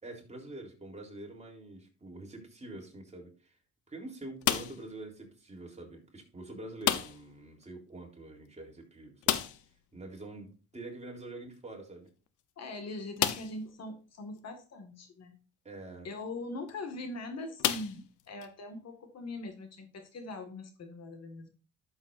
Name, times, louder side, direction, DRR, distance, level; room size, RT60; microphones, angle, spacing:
voice 1, 0.0-3.6 3.9-9.4 9.9-12.1 15.6-16.1, right 2 dB, 20° right, 0 dB, 3.6 m, -46 dB
sound 1, 4.4-5.0 6.8-7.4 7.6-7.7 8.0-8.1 9.2-9.8 11.5-11.6 12.3-12.4 13.2-13.7 14.4-14.5 16.5-16.7 17.6-18.5, left 11 dB, 80° left, 0.9 m, -31 dB
voice 2, 12.6-15.3 16.0-21.5, left 2 dB, 60° left, 6 dB, 2.0 m, -42 dB
12.0 x 7.2 x 2.6 m, 0.35 s
cardioid pair, 90°, 30 cm